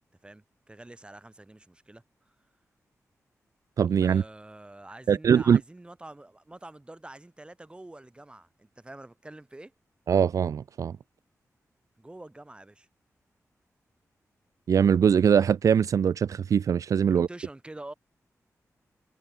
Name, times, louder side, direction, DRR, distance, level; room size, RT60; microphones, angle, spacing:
voice 1, 0.2-2.3 4.0-9.7 12.0-12.9 17.1-17.9, right 2 dB, 15° right, 6.6 m, -46 dB
voice 2, 3.8-4.2 5.1-5.6 10.1-11.0 14.7-17.3, right 7 dB, 75° right, 0.4 m, -22 dB
wide cardioid pair, 95°, 6 cm